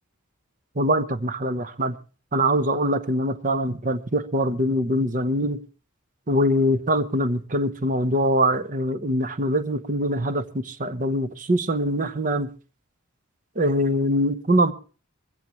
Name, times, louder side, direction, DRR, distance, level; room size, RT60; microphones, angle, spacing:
voice 1, 0.7-2.0 2.3-5.6 6.3-12.5 13.6-14.7, equal, 40° right, 0.9 m, -23 dB
21.0 x 15.5 x 3.1 m
head